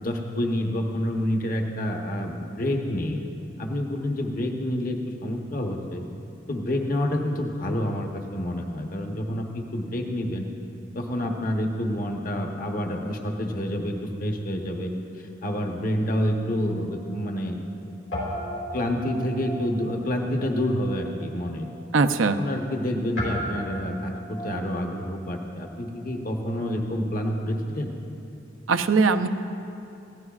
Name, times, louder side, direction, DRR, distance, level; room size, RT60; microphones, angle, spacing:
voice 1, 0.0-3.2 3.6-6.1 6.5-10.5 10.9-14.9 15.4-17.6 18.7-21.7 22.4-27.9, left 1 dB, 45° left, 2 dB, 1.1 m, -28 dB
Guitar, 16.2-17.8 18.1-26.7, equal, 80° left, 3.5 m, -38 dB
voice 2, 21.9-22.4 28.7-29.3, right 4 dB, 90° right, 8 dB, 0.6 m, -20 dB
20.5 x 15.5 x 2.4 m, 2.8 s
head